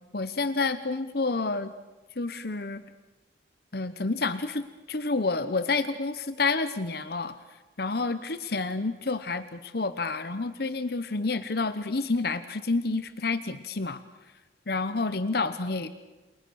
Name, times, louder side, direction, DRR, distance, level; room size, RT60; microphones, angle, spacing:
voice 1, 0.0-1.7 2.2-2.8 3.7-7.4 7.8-14.0 14.7-15.9, left 3 dB, 55° left, 12 dB, 1.0 m, -29 dB
28.5 x 28.5 x 6.4 m, 1.2 s
head